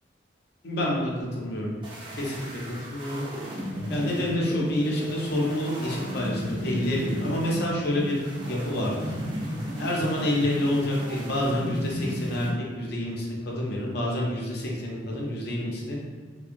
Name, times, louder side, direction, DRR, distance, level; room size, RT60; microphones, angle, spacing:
voice 1, 0.6-1.8 2.1-2.6 2.9-9.2 9.8-12.5 12.7-16.0, left 1 dB, 55° left, -2 dB, 0.5 m, -28 dB
sound 1, 1.8-12.5, equal, 25° right, 0.4 m, -34 dB
2.7 x 2.1 x 2.5 m, 1.5 s
head